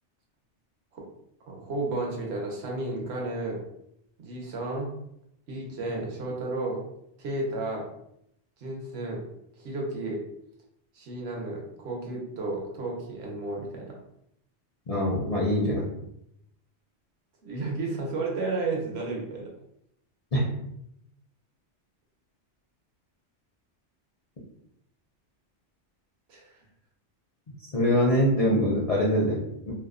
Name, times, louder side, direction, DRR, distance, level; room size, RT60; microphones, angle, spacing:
voice 1, 1.5-3.6 4.2-4.9 5.5-6.8 7.2-7.9 8.6-9.2 9.6-10.2 10.9-13.9 17.4-19.5 26.3-26.5, right 2 dB, 70° right, -1 dB, 0.9 m, -32 dB
voice 2, 14.9-15.9 20.3-20.5 27.7-29.7, equal, 50° left, -6 dB, 0.4 m, -24 dB
2.6 x 2.0 x 2.4 m, 0.77 s
omnidirectional pair, 1.2 m